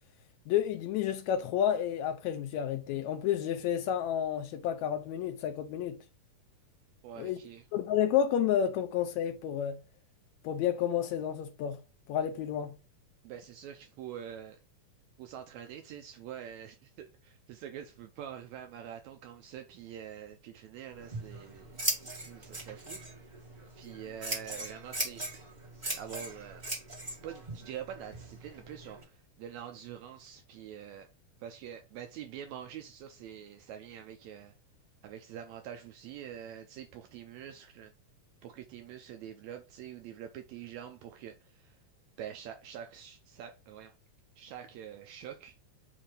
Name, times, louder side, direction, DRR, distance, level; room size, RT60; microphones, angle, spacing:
voice 1, 0.5-6.0 7.2-7.4 7.7-9.8 10.4-11.8 12.1-12.8, left 9 dB, 80° left, 1.6 m, -30 dB
voice 2, 7.0-7.7 13.2-14.6 15.2-23.4 23.7-25.3 25.9-26.6 27.2-31.1 31.4-34.5 35.0-37.9 38.4-41.8 42.2-43.9 44.4-45.6, right 9 dB, 80° right, 1.7 m, -45 dB
Scissors, 20.9-29.0, right 2 dB, 30° right, 0.8 m, -39 dB
7.3 x 2.6 x 4.8 m
omnidirectional pair, 3.7 m